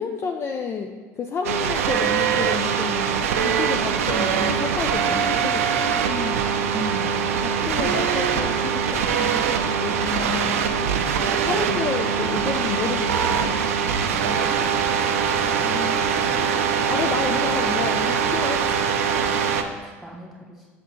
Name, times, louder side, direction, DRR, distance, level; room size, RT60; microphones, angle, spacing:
voice 1, 0.0-6.0 7.4-10.8 11.3-14.8 15.6-18.7, left 6 dB, 35° left, 4 dB, 0.4 m, -31 dB
sound 1, 1.4-19.6, right 7 dB, 80° right, 0.4 m, -23 dB
sound 2, 4.0-17.2, right 2 dB, 85° left, 1.6 m, -44 dB
voice 2, 6.1-6.4 6.7-7.2 11.4-11.9 19.8-20.7, right 1 dB, ahead, -2 dB, 1.8 m, -35 dB
7.9 x 5.7 x 3.1 m, 1.5 s
hypercardioid pair, 75°, 8 cm